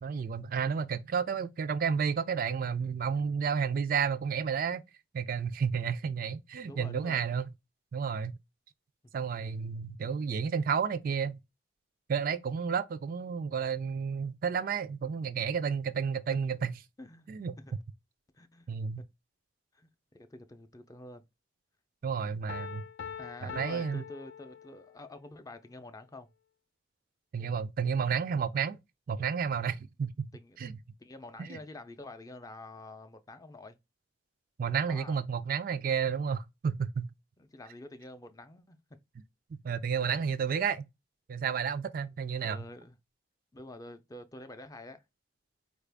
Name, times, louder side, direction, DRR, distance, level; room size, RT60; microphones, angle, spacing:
voice 1, 0.0-4.8 5.1-7.5 7.9-8.3 9.1-11.4 12.1-16.7 17.3-17.5 18.7-19.0 22.0-22.8 23.4-24.0 27.3-28.8 29.1-30.3 30.6-30.8 31.4-31.6 34.6-37.1 39.6-40.8 41.3-42.6, right 6 dB, 50° right, 0.3 m, -31 dB
voice 2, 6.6-7.3 17.0-17.3 17.6-17.7 18.3-18.6 19.7-21.2 23.2-26.3 30.3-30.6 31.0-33.8 34.9-35.2 37.4-39.0 40.0-40.1 42.4-43.0 43.5-45.0, left 2 dB, 20° left, 0.4 m, -47 dB
Piano, 22.5-25.1, left 7 dB, 80° left, 0.4 m, -43 dB
4.3 x 2.4 x 3.3 m
head